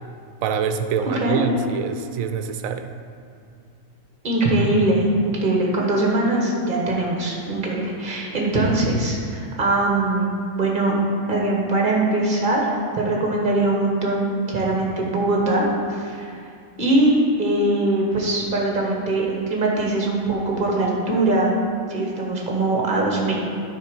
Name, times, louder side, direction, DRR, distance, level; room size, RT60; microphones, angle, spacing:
voice 1, 0.4-2.9, right 7 dB, 80° right, 8 dB, 1.0 m, -26 dB
voice 2, 1.0-1.4 4.2-10.9 11.3-12.6 13.0-16.3 16.8-21.6 21.9-23.4, right 2 dB, 40° right, -2 dB, 1.4 m, -21 dB
9.3 x 4.0 x 5.2 m, 2.4 s
omnidirectional pair, 1.4 m